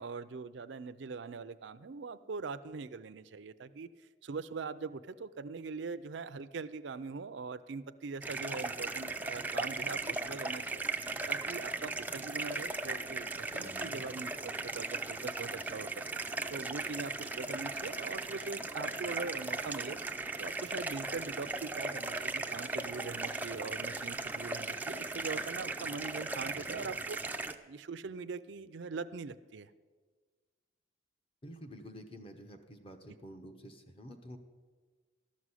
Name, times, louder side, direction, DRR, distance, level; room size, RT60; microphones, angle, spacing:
voice 1, 0.0-3.9 4.2-10.8 11.3-15.9 16.5-20.0 20.4-27.4 27.7-29.7, right 4 dB, 65° right, 11 dB, 0.5 m, -42 dB
sound 1, 8.2-27.6, right 3 dB, 10° right, 0.4 m, -37 dB
voice 2, 13.6-14.0 26.4-26.9 31.4-34.4, equal, 30° left, 6 dB, 1.0 m, -50 dB
13.0 x 6.2 x 9.7 m, 1.4 s
head